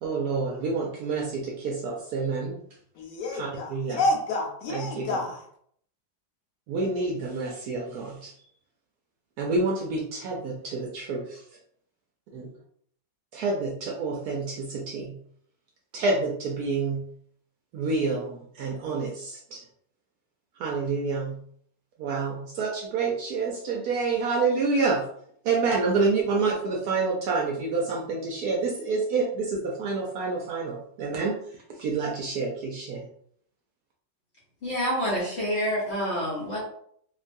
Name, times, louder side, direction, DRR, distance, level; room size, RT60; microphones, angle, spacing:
voice 1, 0.0-2.5 3.3-4.0 4.7-5.2 6.7-8.3 9.4-11.4 12.3-12.5 13.3-15.2 15.9-17.1 17.7-19.6 20.6-21.4 22.0-25.1 25.4-31.3 31.8-33.0, right 4 dB, 70° right, -2 dB, 0.9 m, -28 dB
voice 2, 3.0-5.4, left 2 dB, 75° left, 1 dB, 1.1 m, -29 dB
voice 3, 34.6-36.6, equal, 55° left, -7 dB, 0.7 m, -27 dB
3.0 x 2.2 x 2.5 m, 0.65 s
omnidirectional pair, 2.0 m